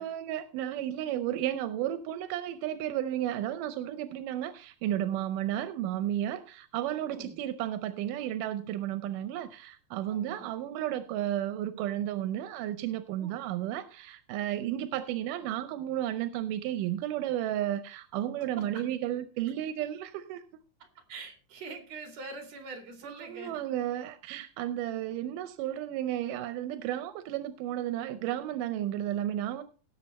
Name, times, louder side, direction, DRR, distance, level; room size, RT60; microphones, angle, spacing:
voice 1, 0.0-20.4 23.0-29.6, right 12 dB, 90° right, 12 dB, 2.3 m, -33 dB
voice 2, 7.0-7.4 10.1-10.5 13.2-13.4 18.6-18.9 21.1-23.6, right 3 dB, 55° right, 4 dB, 3.5 m, -44 dB
17.5 x 6.9 x 4.1 m, 0.37 s
omnidirectional pair, 3.7 m